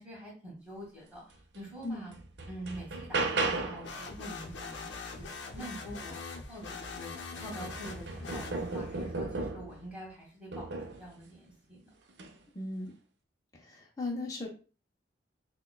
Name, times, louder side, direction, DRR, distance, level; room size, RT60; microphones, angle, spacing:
voice 1, 0.0-2.1 2.5-7.1 7.4-11.9, right 1 dB, 10° right, -4 dB, 1.4 m, -46 dB
sound 1, 1.5-1.6 2.1-3.9 6.3-6.4 6.8-9.8 10.5-11.1 12.1-12.3, right 3 dB, 65° right, 0.5 m, -35 dB
sound 2, 3.8-9.0, left 4 dB, 70° left, 0.6 m, -43 dB
voice 2, 12.5-12.9 13.5-14.5, left 2 dB, 20° left, -1 dB, 0.5 m, -37 dB
5.9 x 2.2 x 2.3 m, 0.37 s
head